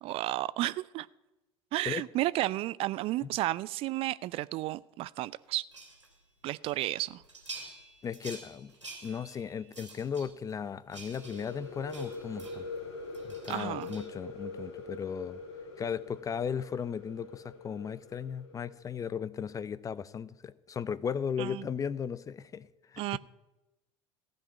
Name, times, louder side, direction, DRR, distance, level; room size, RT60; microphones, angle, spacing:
voice 1, 0.0-1.1 1.7-5.6 6.4-7.2 13.5-13.9 21.4-21.7 23.0-23.2, right 16 dB, 40° right, 19 dB, 0.3 m, -32 dB
sound 1, 5.7-6.2 6.7-12.8 13.1-14.1, right 3 dB, 90° right, 2.5 m, -49 dB
voice 2, 8.0-8.7 9.0-12.7 13.2-15.4 15.8-23.2, left 7 dB, 25° left, 20 dB, 0.5 m, -36 dB
sound 2, 11.2-18.8, left 3 dB, 70° left, 2.4 m, -43 dB
15.5 x 5.3 x 9.2 m, 0.97 s
figure-of-eight pair, 65°, 15 cm